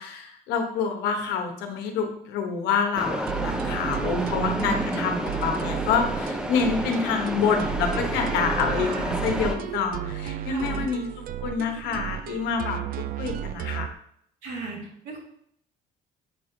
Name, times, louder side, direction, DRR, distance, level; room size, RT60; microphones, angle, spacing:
voice 1, 0.0-11.1 11.4-13.9, left 6 dB, 90° left, 4 dB, 1.1 m, -27 dB
sound 1, 3.0-9.6, right 1 dB, 5° right, 0.7 m, -30 dB
sound 2, 3.3-13.9, right 11 dB, 60° right, 0.4 m, -33 dB
voice 2, 4.0-5.1 8.7-9.2 9.5-9.8 10.5-10.9 14.4-15.2, right 4 dB, 85° right, -3 dB, 2.4 m, -35 dB
7.5 x 4.5 x 3.8 m, 0.69 s
cardioid pair, 110°, 17 cm